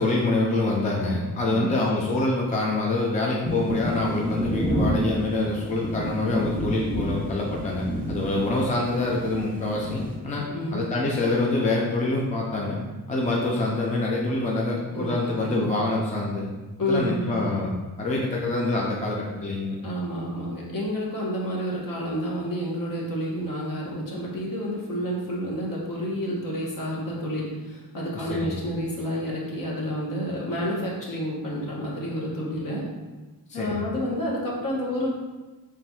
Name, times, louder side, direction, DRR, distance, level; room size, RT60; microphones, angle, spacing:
voice 1, 0.0-12.8 13.1-16.5 16.9-19.8 28.1-28.5 33.5-33.9, left 2 dB, 20° left, -3 dB, 0.4 m, -26 dB
sound 1, 3.4-10.1, equal, 5° left, 0.9 m, -30 dB
voice 2, 10.5-10.9 14.9-15.9 16.8-17.5 19.8-32.8 33.5-35.1, equal, 55° left, -3 dB, 1.1 m, -29 dB
5.7 x 3.3 x 2.3 m, 1.2 s
wide cardioid pair, 165°, 39 cm